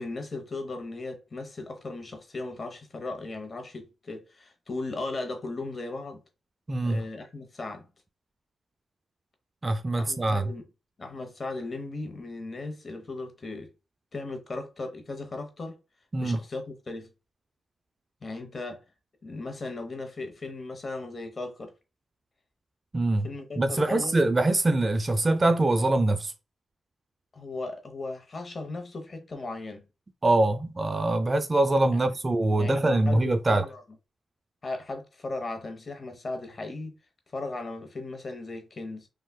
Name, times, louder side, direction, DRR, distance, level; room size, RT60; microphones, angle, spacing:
voice 1, 0.0-6.2 6.8-7.9 10.0-10.6 11.0-13.7 14.1-15.8 16.2-17.1 18.2-18.8 19.2-21.7 23.2-24.2 27.3-29.9 31.9-32.1 32.6-33.8 34.6-36.9 37.3-39.1, left 2 dB, 40° left, 0.8 m, -37 dB
voice 2, 6.7-7.0 9.6-10.5 16.1-16.4 22.9-23.3 23.6-26.3 30.2-33.7, right 2 dB, 30° right, 0.3 m, -24 dB
3.4 x 2.4 x 2.2 m
cardioid pair, 60°, 0 cm